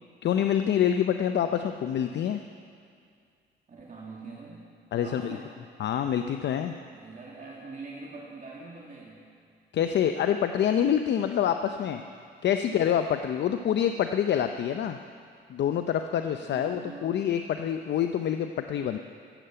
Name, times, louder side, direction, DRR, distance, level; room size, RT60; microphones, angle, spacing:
voice 1, 0.2-2.4 4.9-5.4 5.8-6.7 9.7-12.0 12.4-15.0 15.5-19.0, left 9 dB, 60° left, 8 dB, 0.6 m, -26 dB
voice 2, 3.7-4.7 5.0-5.5 6.9-9.3 12.6-12.8 16.4-17.2, right 3 dB, 40° right, -4 dB, 2.1 m, -43 dB
15.0 x 8.1 x 7.7 m, 2.3 s
cardioid pair, 90°, 20 cm